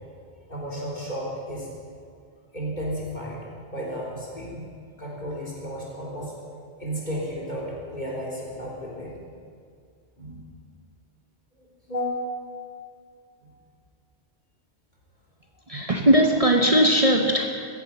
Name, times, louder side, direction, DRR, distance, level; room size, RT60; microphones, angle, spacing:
voice 1, 0.5-1.7 2.5-3.4 3.7-4.7 5.0-6.3 6.8-9.3 10.2-10.4 11.6-12.7, equal, 45° left, -4 dB, 3.6 m, -33 dB
voice 2, 15.7-17.7, equal, 35° right, 2 dB, 0.9 m, -19 dB
14.5 x 9.9 x 7.8 m, 2.2 s
omnidirectional pair, 1.1 m